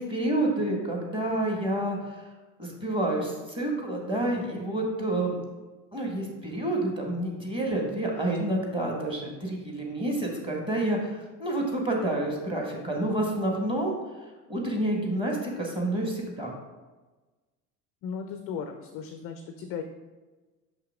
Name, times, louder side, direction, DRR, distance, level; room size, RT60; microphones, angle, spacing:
voice 1, 0.0-2.2 2.6-5.4 5.9-14.0 14.5-16.5, right 1 dB, 10° right, -1 dB, 1.6 m, -29 dB
voice 2, 18.0-19.8, left 6 dB, 30° left, 7 dB, 0.4 m, -36 dB
5.8 x 5.7 x 3.6 m, 1.2 s
figure-of-eight pair, 75°, 47 cm